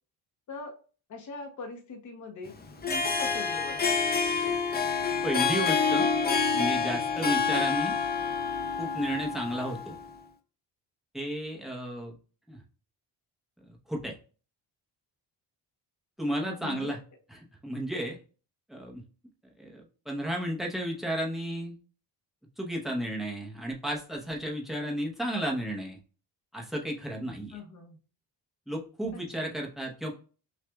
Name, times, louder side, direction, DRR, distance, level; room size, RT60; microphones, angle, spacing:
voice 1, 1.1-2.5 2.9-4.0 16.4-17.0 27.5-28.0 29.4-29.5, left 3 dB, 40° left, 3 dB, 0.8 m, -41 dB
Harp, 2.7-10.0, left 5 dB, 20° left, 0.5 m, -28 dB
voice 2, 5.2-6.1 6.5-7.9 8.8-9.9 11.1-12.2 12.5-12.6 13.9-14.1 16.2-17.0 17.3-18.2 18.7-19.0 19.6-21.8 22.6-26.0 26.5-27.6 28.7-30.1, equal, ahead, 0 dB, 0.8 m, -33 dB
6.0 x 2.4 x 2.3 m, 0.37 s
cardioid pair, 145°, 44 cm